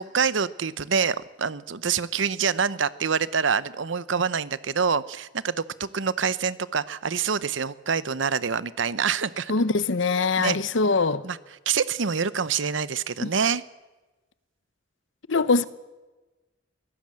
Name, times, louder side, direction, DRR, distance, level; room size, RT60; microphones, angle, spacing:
voice 1, 0.0-9.5 10.4-10.6 11.2-11.4 11.7-13.6, right 6 dB, 75° right, 0.8 m, -26 dB
voice 2, 9.5-11.2 13.2-13.3 15.3-15.6, left 4 dB, 75° left, 0.8 m, -22 dB
22.5 x 16.5 x 7.6 m
head